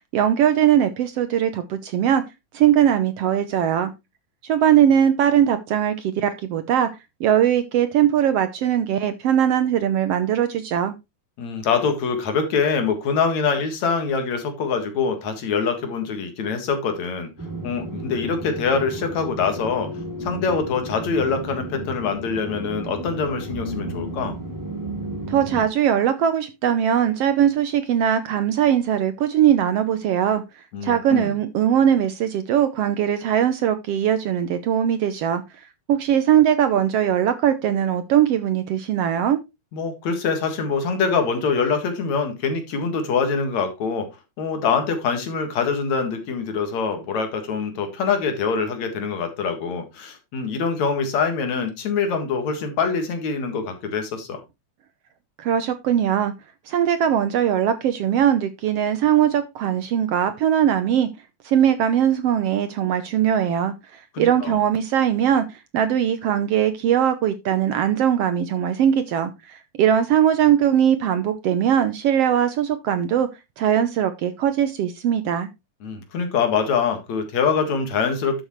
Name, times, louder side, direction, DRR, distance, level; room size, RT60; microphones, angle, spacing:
voice 1, 0.1-2.2 2.5-3.9 4.4-6.9 7.2-10.9 25.3-30.4 30.8-35.4 35.9-39.4 55.4-56.3 56.7-61.1 61.5-65.5 65.7-73.3 73.6-75.5, right 9 dB, 70° right, 1.6 m, -20 dB
voice 2, 11.4-17.3 17.6-19.9 20.2-24.4 30.7-31.3 39.7-44.1 44.4-54.4 64.1-64.6 75.8-78.4, left 5 dB, 70° left, 3.0 m, -24 dB
sound 1, 17.4-25.7, right 1 dB, 5° right, 2.7 m, -33 dB
12.0 x 7.0 x 3.1 m
omnidirectional pair, 3.4 m